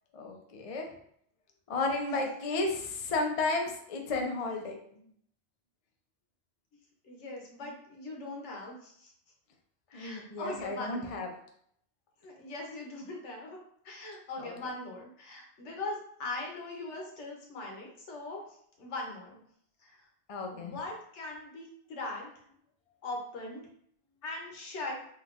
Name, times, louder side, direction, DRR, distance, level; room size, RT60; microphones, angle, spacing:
voice 1, 0.1-0.9 1.7-4.8 9.9-11.3 14.4-14.5 20.3-20.7, left 3 dB, 50° left, 2 dB, 0.4 m, -33 dB
voice 2, 7.0-9.1 9.9-11.3 12.2-13.6 13.8-19.4 19.8-20.1 20.5-22.3 23.0-23.7 24.2-25.0, left 2 dB, 75° left, 0 dB, 1.1 m, -40 dB
3.6 x 2.6 x 2.4 m, 0.66 s
omnidirectional pair, 1.2 m